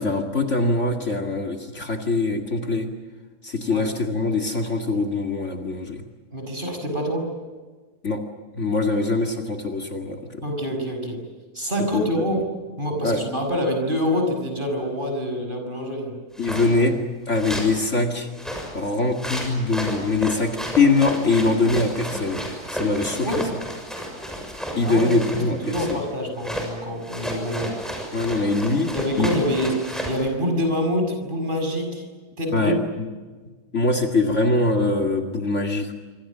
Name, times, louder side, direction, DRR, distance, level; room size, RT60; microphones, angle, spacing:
voice 1, 0.0-2.9 3.4-6.0 8.0-8.2 8.5-10.4 11.9-12.2 13.0-13.2 16.4-17.0 17.3-18.3 18.7-22.4 22.7-23.3 24.8-26.0 28.1-28.9 29.2-29.3 32.5-33.1 33.7-35.9, left 3 dB, 45° left, 3 dB, 2.6 m, -23 dB
voice 2, 6.3-7.3 10.4-11.2 11.5-12.5 12.8-16.1 23.2-23.4 24.8-27.8 28.9-32.0 32.4-32.7, equal, 30° right, 4 dB, 6.4 m, -26 dB
sound 1, 16.3-16.7 17.3-17.8 18.3-26.0 26.4-26.7 27.0-30.2, equal, ahead, 6.5 m, -32 dB
26.5 x 26.0 x 7.5 m, 1.4 s
omnidirectional pair, 1.7 m